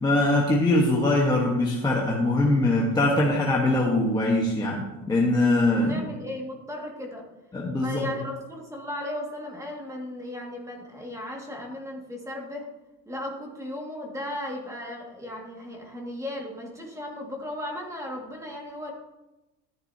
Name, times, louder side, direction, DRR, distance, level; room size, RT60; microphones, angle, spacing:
voice 1, 0.0-6.0 7.5-8.1, left 2 dB, 10° left, -2 dB, 1.1 m, -22 dB
voice 2, 5.7-7.2 7.7-12.7 13.1-18.9, left 1 dB, 5° right, 0 dB, 1.9 m, -36 dB
13.0 x 10.5 x 2.7 m, 1.0 s
cardioid pair, 155°, 41 cm